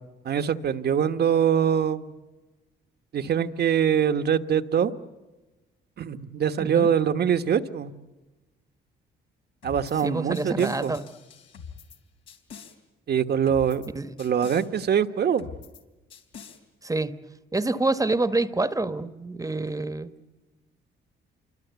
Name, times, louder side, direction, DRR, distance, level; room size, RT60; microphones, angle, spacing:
voice 1, 0.2-2.1 3.1-4.9 6.0-7.9 9.6-10.9 13.1-13.8 14.2-15.5, right 8 dB, 55° right, 9 dB, 1.3 m, -23 dB
sound 1, 9.6-10.1 10.3-12.0 12.3-12.7 13.5-13.9 14.2-14.7 15.4-15.8 16.1-16.6, left 6 dB, 85° left, 3.5 m, -44 dB
voice 2, 10.0-11.0 13.9-14.1 16.8-17.1 17.5-20.1, right 2 dB, 15° right, 11 dB, 1.2 m, -27 dB
28.0 x 24.5 x 8.2 m, 1.1 s
cardioid pair, 90°, 20 cm